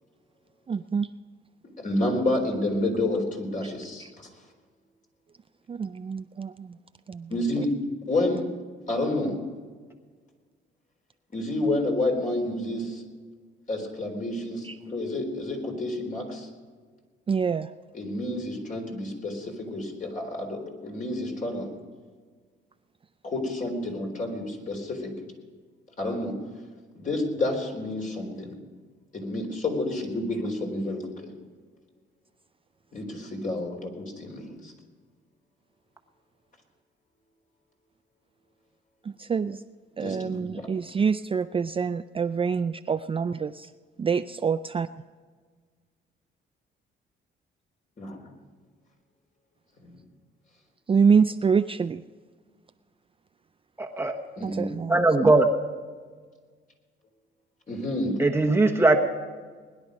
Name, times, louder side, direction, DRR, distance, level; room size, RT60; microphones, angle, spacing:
voice 1, 0.7-1.1 5.7-6.7 7.1-7.3 14.7-14.8 17.3-17.7 39.2-39.6 40.0-43.7 44.0-44.9 50.9-52.0 54.4-55.3, right 6 dB, 25° right, 10 dB, 0.4 m, -26 dB
voice 2, 1.8-4.1 7.3-7.7 8.1-8.5 8.9-9.4 11.3-13.0 13.7-16.5 17.9-21.7 23.2-25.1 26.0-26.4 27.0-28.6 29.1-31.3 32.9-34.7 40.0-40.7 48.0-48.2 49.8-50.0 54.4-54.9 57.7-58.2, left 2 dB, 40° left, 2 dB, 4.0 m, -29 dB
voice 3, 53.8-54.1 54.9-55.5 58.2-59.0, right 2 dB, 10° right, 2 dB, 1.2 m, -20 dB
20.5 x 10.5 x 5.2 m, 1.5 s
cardioid pair, 90°, 20 cm